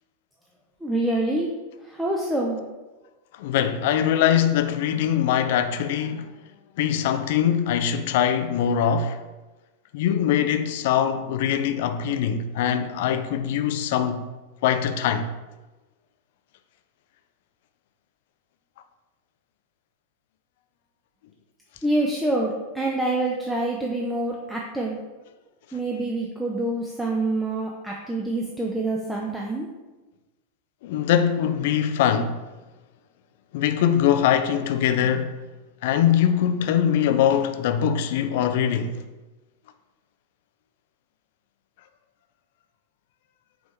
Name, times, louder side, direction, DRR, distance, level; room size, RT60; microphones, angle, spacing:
voice 1, 0.8-1.5 1.8-2.6 21.8-25.0 25.7-29.7, right 2 dB, 5° right, 0.5 m, -26 dB
voice 2, 3.3-6.3 6.8-9.2 9.9-14.2 14.6-15.3 30.8-32.4 33.5-35.4 35.8-39.0, left 9 dB, 50° left, 0.3 m, -22 dB
5.2 x 2.9 x 3.5 m
figure-of-eight pair, 90°, 0 cm